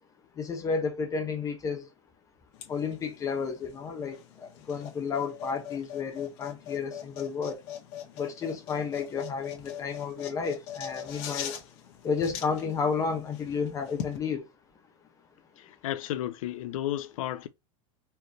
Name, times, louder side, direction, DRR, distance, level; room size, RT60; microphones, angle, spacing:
voice 1, 0.4-1.8 2.7-4.2 4.4-7.6 8.2-11.5 12.0-14.4, left 5 dB, 20° left, 0.9 m, -31 dB
sound 1, 2.5-14.2, left 10 dB, 50° left, 1.7 m, -42 dB
voice 2, 15.6-17.5, left 12 dB, 75° left, 0.6 m, -33 dB
4.5 x 3.2 x 2.9 m
supercardioid pair, 160°, 18 cm